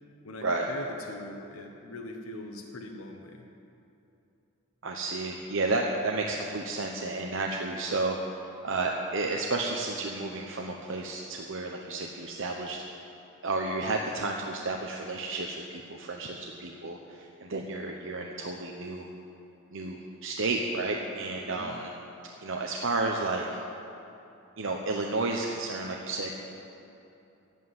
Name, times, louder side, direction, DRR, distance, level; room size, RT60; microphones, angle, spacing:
voice 1, 0.2-3.5 21.4-21.8, left 2 dB, 85° left, 3 dB, 1.1 m, -42 dB
voice 2, 4.8-12.8 13.4-19.1 19.7-21.9 22.4-23.6 24.6-26.6, right 3 dB, 65° right, 1 dB, 0.9 m, -32 dB
13.0 x 8.3 x 9.5 m, 2.8 s
head